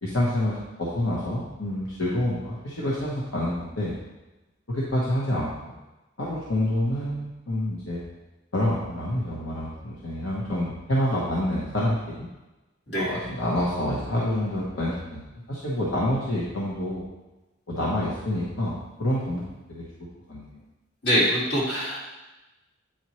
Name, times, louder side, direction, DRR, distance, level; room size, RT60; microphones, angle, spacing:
voice 1, 0.0-4.0 4.7-5.8 6.2-8.0 8.5-12.3 13.0-15.2 15.5-17.1 17.7-19.4 19.7-19.8 20.3-20.6, left 1 dB, 80° left, -6 dB, 1.1 m, -27 dB
voice 2, 21.0-22.0, equal, 55° left, -6 dB, 2.2 m, -23 dB
8.9 x 4.4 x 3.1 m, 1.1 s
head